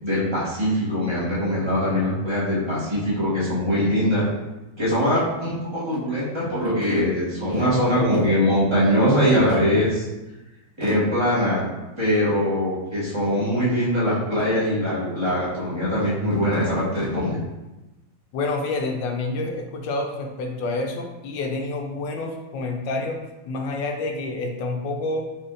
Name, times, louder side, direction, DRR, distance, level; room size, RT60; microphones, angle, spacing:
voice 1, 0.0-4.3 4.8-10.0 10.8-11.6 12.0-17.4, equal, 15° right, -10 dB, 1.1 m, -22 dB
voice 2, 18.3-25.3, left 2 dB, 75° left, 3 dB, 1.1 m, -28 dB
4.2 x 3.3 x 2.5 m, 1.0 s
omnidirectional pair, 2.2 m